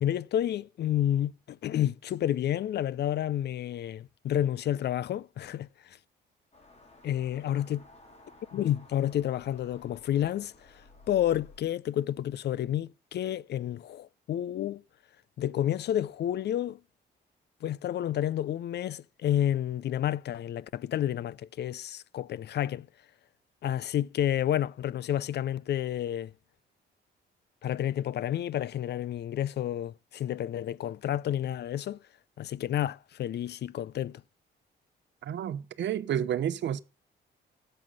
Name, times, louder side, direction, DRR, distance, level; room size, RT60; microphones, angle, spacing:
voice 1, 0.0-6.0 7.0-7.8 8.5-14.8 15.4-16.8 17.6-22.9 23.6-26.3 27.6-32.0 32.4-34.2, left 11 dB, 60° left, 0.5 m, -30 dB
sound 1, 6.5-11.6, left 2 dB, 35° left, 3.8 m, -55 dB
voice 2, 35.2-36.8, right 10 dB, 65° right, 0.9 m, -30 dB
12.5 x 7.8 x 5.5 m
cardioid pair, 90°, 20 cm